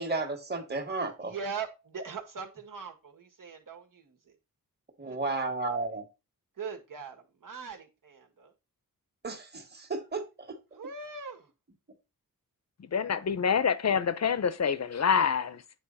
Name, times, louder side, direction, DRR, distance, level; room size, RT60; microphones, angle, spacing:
voice 1, 0.0-1.3 5.0-6.0 9.2-10.6, right 3 dB, 30° right, 1.9 m, -33 dB
voice 2, 1.2-4.3 5.0-5.8 6.6-8.5 10.8-11.5, right 5 dB, 65° right, 2.0 m, -41 dB
voice 3, 12.8-15.6, left 6 dB, 50° left, 0.8 m, -26 dB
9.0 x 4.8 x 4.2 m
wide cardioid pair, 95°, 35 cm